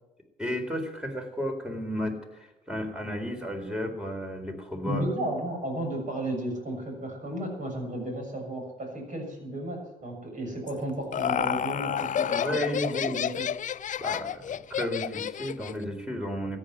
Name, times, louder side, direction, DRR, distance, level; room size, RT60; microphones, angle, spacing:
voice 1, 0.4-5.1 12.4-13.2 14.0-16.6, equal, 5° right, 4 dB, 4.0 m, -33 dB
voice 2, 4.8-13.5, right 1 dB, 40° right, 2 dB, 7.0 m, -33 dB
Laughter, 10.7-15.8, left 9 dB, 40° left, 0.5 m, -30 dB
14.0 x 9.7 x 9.5 m, 1.1 s
hypercardioid pair, 60°, 20 cm